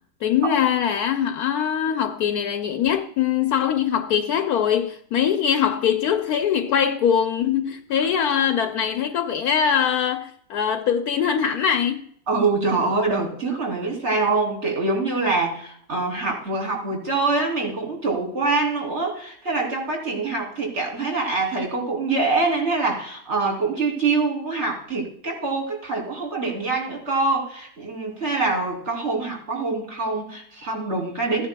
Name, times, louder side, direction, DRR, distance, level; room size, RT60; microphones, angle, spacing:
voice 1, 0.2-12.1, left 8 dB, 70° left, 1.1 m, -22 dB
voice 2, 12.3-31.5, right 3 dB, 40° right, 3.3 m, -24 dB
15.5 x 10.0 x 2.2 m
omnidirectional pair, 1.8 m